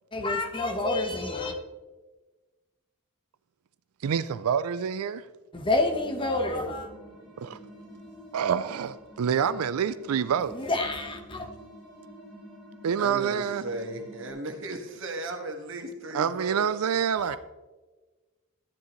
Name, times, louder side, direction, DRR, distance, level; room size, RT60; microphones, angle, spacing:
voice 1, 0.1-1.5 5.5-6.9 10.5-11.5 17.2-17.4, left 2 dB, 25° left, 1.1 m, -28 dB
voice 2, 4.0-5.2 7.4-7.6 8.3-10.5 12.8-13.6 16.1-17.4, right 7 dB, 85° right, 0.4 m, -27 dB
sound 1, 5.8-14.3, equal, ahead, 2.9 m, -48 dB
voice 3, 13.0-16.7, right 1 dB, 60° right, 1.6 m, -36 dB
13.5 x 10.0 x 3.1 m
head